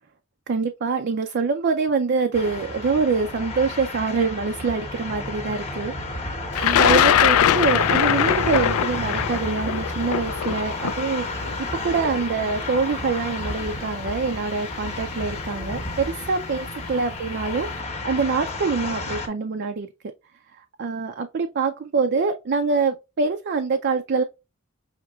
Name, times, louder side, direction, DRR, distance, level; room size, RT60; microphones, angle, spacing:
voice 1, 0.5-19.9 20.5-24.2, right 4 dB, 50° right, 0.4 m, -25 dB
sound 1, 2.3-19.3, left 2 dB, 30° left, 0.8 m, -31 dB
Thunder, 6.6-12.6 13.5-13.6 14.7-15.0 15.3-15.8, left 10 dB, 85° left, 0.3 m, -21 dB
5.8 x 2.8 x 2.3 m
head